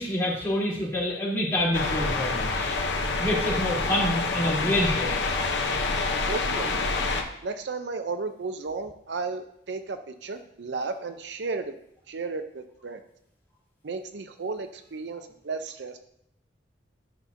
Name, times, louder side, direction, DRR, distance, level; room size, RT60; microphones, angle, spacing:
voice 1, 0.0-2.8 3.2-5.2, left 1 dB, 15° left, -8 dB, 3.3 m, -27 dB
sound 1, 1.7-7.2, left 3 dB, 80° left, 0.9 m, -27 dB
voice 2, 6.3-6.7 7.4-11.7 12.1-13.0 13.8-16.0, right 4 dB, 75° right, 9 dB, 0.6 m, -34 dB
11.5 x 5.7 x 2.7 m, 0.75 s
head